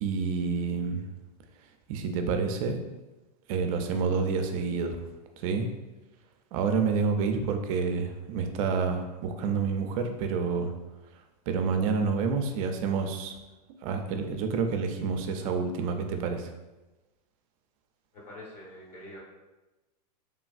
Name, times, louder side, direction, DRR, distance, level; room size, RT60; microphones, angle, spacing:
voice 1, 0.0-1.1 1.9-2.8 3.5-5.0 5.4-5.7 6.5-10.7 11.5-13.4 13.8-16.5, right 5 dB, 55° right, 6 dB, 0.4 m, -28 dB
voice 2, 18.1-19.2, left 1 dB, 35° left, -5 dB, 1.1 m, -45 dB
3.1 x 2.2 x 2.4 m, 1.1 s
hypercardioid pair, 115°, 21 cm